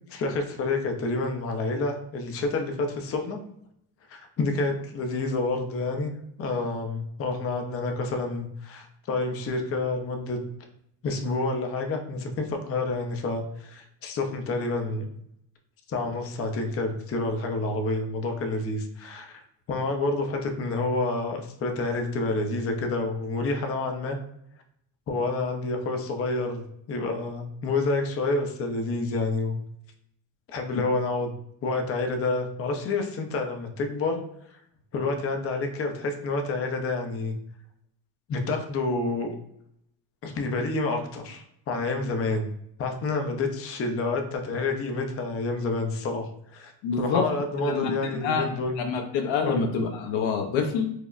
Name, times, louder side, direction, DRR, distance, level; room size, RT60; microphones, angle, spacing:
voice 1, 0.1-3.4 4.1-6.1 6.4-10.4 11.0-15.1 15.9-19.4 19.7-24.2 25.1-26.6 26.9-29.5 30.5-31.3 31.6-34.2 34.5-34.6 34.9-37.3 38.3-39.4 40.2-42.5 42.8-46.7 47.0-48.9 49.4-49.7, left 3 dB, 30° left, 4 dB, 0.5 m, -28 dB
voice 2, 46.8-47.3 47.6-48.5 48.8-50.9, left 5 dB, 70° left, 5 dB, 0.7 m, -27 dB
4.6 x 2.0 x 2.4 m, 0.74 s
cardioid pair, 115°, 49 cm